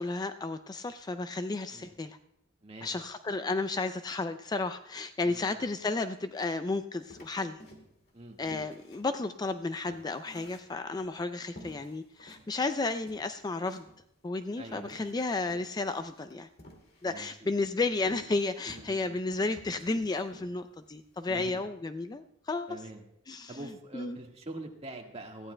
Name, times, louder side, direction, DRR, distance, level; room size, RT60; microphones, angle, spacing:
voice 1, 0.0-2.2 2.8-7.6 8.4-13.8 14.2-16.5 17.0-22.8 23.3-23.5 23.9-24.2, left 3 dB, 20° left, 10 dB, 0.3 m, -33 dB
voice 2, 5.2-5.7 8.1-8.4 14.6-15.2 17.0-17.5 18.7-19.2 21.3-21.6 22.7-23.0 23.5-25.5, right 1 dB, 30° right, 2 dB, 1.6 m, -45 dB
sound 1, 7.1-8.1 8.5-11.1 11.6-12.5 12.8-12.9 13.1-14.0 14.6-17.3 18.0-19.3 19.6-20.5 20.9-21.0 21.3-21.6, left 1 dB, 55° left, 2.2 m, -51 dB
20.5 x 14.5 x 2.2 m, 0.79 s
head